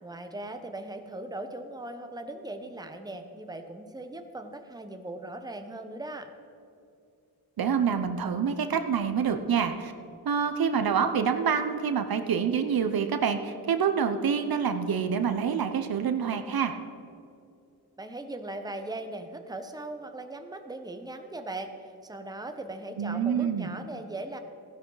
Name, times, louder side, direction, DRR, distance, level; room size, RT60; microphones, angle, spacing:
voice 1, 0.0-6.3 18.0-24.4, right 2 dB, 10° right, 6 dB, 1.0 m, -39 dB
voice 2, 7.6-9.9 10.2-16.7 23.0-23.8, right 7 dB, 65° right, 8 dB, 0.8 m, -27 dB
14.5 x 11.5 x 4.0 m, 2.6 s
cardioid pair, 80°, 38 cm